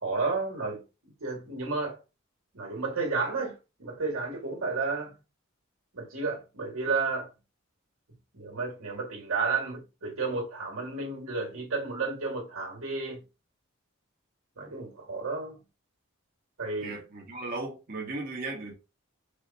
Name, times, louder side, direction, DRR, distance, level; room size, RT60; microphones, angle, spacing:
voice 1, 0.0-2.0 2.5-5.1 5.9-7.3 8.3-13.2 14.6-15.6 16.6-16.9, right 4 dB, 90° right, 1.9 m, -32 dB
voice 2, 16.8-18.7, right 2 dB, 45° right, 1.3 m, -36 dB
4.8 x 2.5 x 4.1 m
head